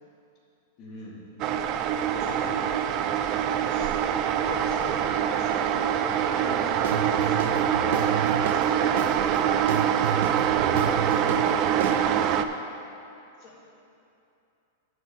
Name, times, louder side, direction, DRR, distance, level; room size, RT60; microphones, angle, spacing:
voice 1, 0.8-1.3 2.1-3.9 4.2-7.4 7.8-12.2 13.4-13.6, left 2 dB, 30° left, -5 dB, 1.8 m, -40 dB
sound 1, 1.4-12.4, right 9 dB, 30° right, 0.3 m, -24 dB
Guitar / Drum, 6.8-12.4, right 6 dB, 70° right, 0.7 m, -32 dB
10.5 x 4.4 x 6.5 m, 2.7 s
supercardioid pair, 165°, 0 cm